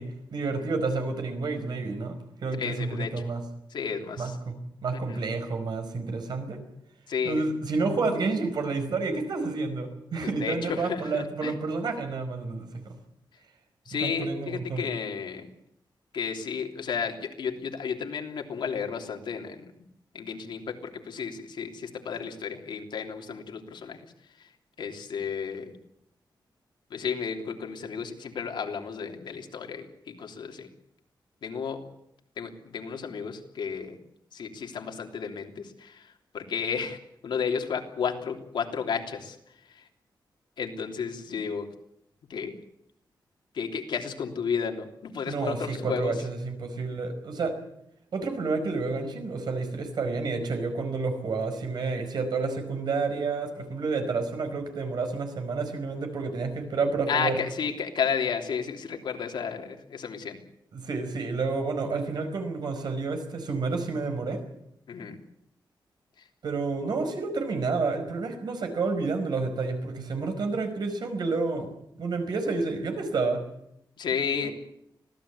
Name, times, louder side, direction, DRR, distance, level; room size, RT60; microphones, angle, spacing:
voice 1, 0.0-2.1 2.4-3.4 4.2-6.6 7.2-12.9 13.9-14.9 45.3-47.5 48.1-57.4 60.7-64.4 66.4-71.7 72.0-73.4 74.4-74.5, right 3 dB, 60° right, 6 dB, 5.0 m, -30 dB
voice 2, 2.6-3.1 3.7-4.4 5.1-5.2 7.1-7.5 10.2-11.5 13.8-15.5 16.1-19.7 20.1-24.0 24.4-24.5 24.8-25.7 26.9-30.7 31.4-31.8 32.4-34.0 34.3-37.0 37.2-39.4 39.6-39.9 40.6-41.7 42.3-42.6 43.5-46.2 57.1-60.4 64.9-65.2 66.2-66.3 74.0-74.5, left 6 dB, 75° left, 3 dB, 3.2 m, -32 dB
25.0 x 17.5 x 8.4 m, 0.78 s
wide cardioid pair, 170°, 8 cm